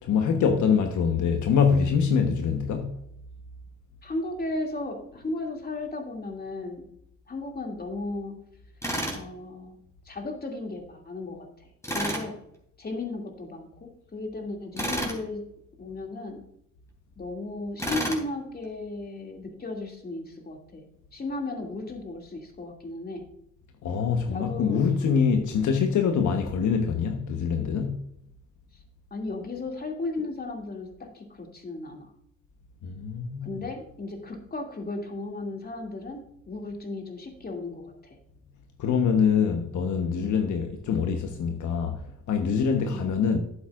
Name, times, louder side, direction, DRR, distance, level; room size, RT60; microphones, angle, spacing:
voice 1, 0.0-3.0 23.8-28.0 32.8-33.5 38.8-42.0 42.3-43.4, left 6 dB, 75° left, 1.2 m, -24 dB
voice 2, 4.0-6.9 7.3-8.4 9.1-9.8 10.0-12.4 12.8-15.4 15.8-16.4 17.2-20.8 21.1-23.2 24.3-24.8 29.1-32.1 33.4-36.2 36.5-38.2 42.8-43.1, left 2 dB, 30° left, 2.6 m, -35 dB
Tools, 8.8-9.2 11.8-12.3 14.8-15.2 17.8-18.2, equal, 10° left, 3.5 m, -30 dB
12.0 x 8.3 x 2.5 m
cardioid pair, 90°, 30 cm